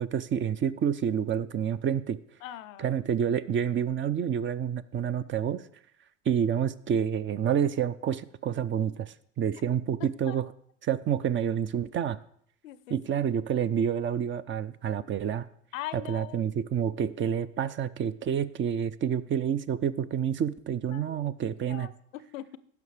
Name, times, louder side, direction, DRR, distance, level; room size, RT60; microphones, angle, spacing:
voice 1, 0.0-2.2 2.8-5.6 6.3-10.4 10.8-12.2 12.9-15.5 15.9-21.9, right 8 dB, 30° right, 16 dB, 0.4 m, -28 dB
voice 2, 2.4-3.0 10.0-10.4 12.6-13.0 15.7-16.5 20.9-21.3 21.7-22.6, left 13 dB, 85° left, 16 dB, 0.5 m, -41 dB
15.5 x 5.9 x 3.3 m, 0.65 s
hypercardioid pair, 65°, 38 cm